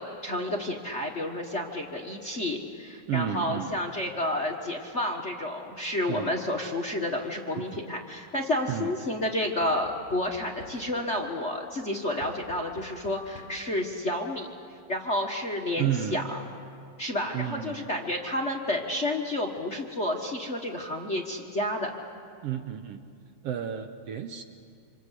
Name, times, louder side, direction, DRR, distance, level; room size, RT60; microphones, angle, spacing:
voice 1, 0.0-14.5 14.9-16.4 17.0-21.9, left 1 dB, 30° left, 1 dB, 1.3 m, -30 dB
voice 2, 3.1-3.8 6.1-6.4 7.6-7.7 8.7-8.9 15.8-16.2 17.3-17.9 22.4-23.1 23.4-24.4, right 10 dB, 65° right, 7 dB, 1.8 m, -31 dB
Knock / Wood, 7.7-7.9 9.6-11.2 12.2-13.8 14.8-14.9 15.2-15.3, left 2 dB, 55° left, 6.8 m, -49 dB
27.0 x 26.5 x 8.3 m, 2.4 s
omnidirectional pair, 3.3 m